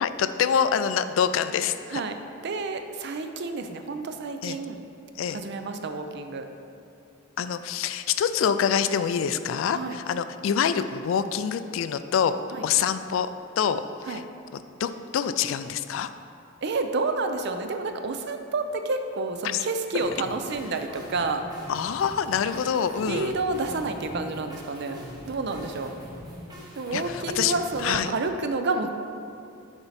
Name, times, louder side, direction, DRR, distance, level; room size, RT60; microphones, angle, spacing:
voice 1, 0.0-2.0 4.4-4.6 5.2-5.4 7.4-12.3 12.6-13.3 13.6-14.2 14.8-16.1 19.4-19.6 21.7-23.4 26.9-28.1, left 7 dB, 75° left, 11 dB, 0.3 m, -26 dB
voice 2, 2.4-4.8 5.3-6.5 9.7-10.0 12.5-12.6 14.1-14.2 16.6-21.4 23.1-25.9 26.8-28.9, right 3 dB, 55° right, 7 dB, 0.5 m, -29 dB
sound 1, 20.0-28.0, equal, 20° right, 1.1 m, -43 dB
7.1 x 4.5 x 4.1 m, 2.6 s
head